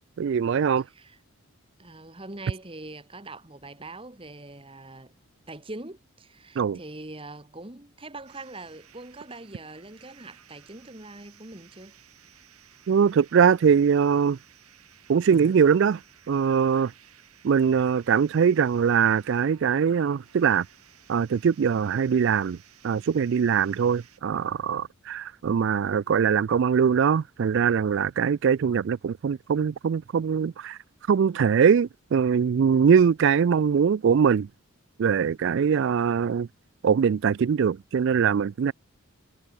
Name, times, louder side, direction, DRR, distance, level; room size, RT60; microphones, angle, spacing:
voice 1, 0.2-0.8 6.6-6.8 12.9-14.4 15.1-16.0 16.3-16.9 17.4-20.7 21.1-22.6 22.8-30.8 31.1-34.5 35.0-36.5 36.8-38.7, right 7 dB, 55° right, 0.3 m, -22 dB
voice 2, 0.8-1.2 1.8-5.1 5.5-12.0, right 2 dB, 25° right, 1.7 m, -43 dB
sound 1, 8.3-24.2, right 10 dB, 85° right, 3.8 m, -56 dB
head